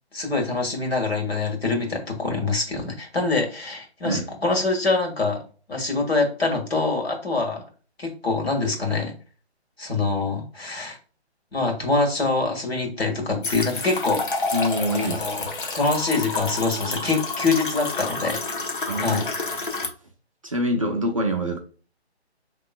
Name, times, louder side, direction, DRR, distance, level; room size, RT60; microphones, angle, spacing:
voice 1, 0.1-5.4 5.7-7.6 8.0-9.1 9.8-11.0 11.5-14.2 15.0-15.4 15.7-18.4 19.0-19.3, left 3 dB, 65° left, 2 dB, 1.6 m, -24 dB
sound 1, 13.4-19.9, left 3 dB, 50° left, 0.8 m, -29 dB
voice 2, 14.5-15.5 18.9-19.2 20.4-21.6, equal, 30° right, 1 dB, 0.5 m, -25 dB
5.4 x 3.0 x 2.3 m, 0.38 s
figure-of-eight pair, 145°, 33 cm